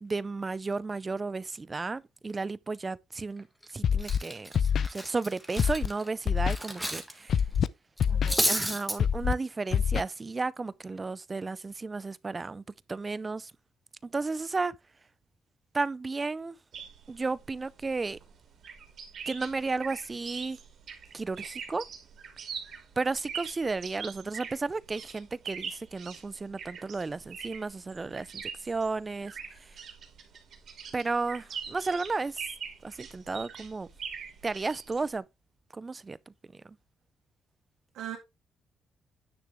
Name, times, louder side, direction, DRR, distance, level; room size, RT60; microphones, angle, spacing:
voice 1, 0.0-7.4 8.5-12.6 12.9-13.5 14.0-14.7 15.7-16.6 17.1-18.2 19.3-20.6 21.1-21.8 23.0-29.8 30.9-32.4 32.8-33.9 34.4-35.2 35.7-36.3 36.6-36.8, right 3 dB, 25° right, 0.5 m, -33 dB
Cutlery silverware, 3.4-3.7 4.0-7.1 7.4-7.6 8.0-9.0, equal, ahead, 1.8 m, -31 dB
Scratching (performance technique), 3.8-4.2 4.5-4.9 5.6-5.9 6.3-6.6 7.3-7.7 8.0-8.3 9.0-9.3 9.7-10.0, left 7 dB, 55° left, 0.5 m, -25 dB
voice 2, 8.0-8.5 37.9-38.2, right 11 dB, 85° right, 1.9 m, -40 dB
sound 1, 16.7-35.2, right 7 dB, 60° right, 2.9 m, -43 dB
9.8 x 6.6 x 3.5 m
cardioid pair, 110°, 0 cm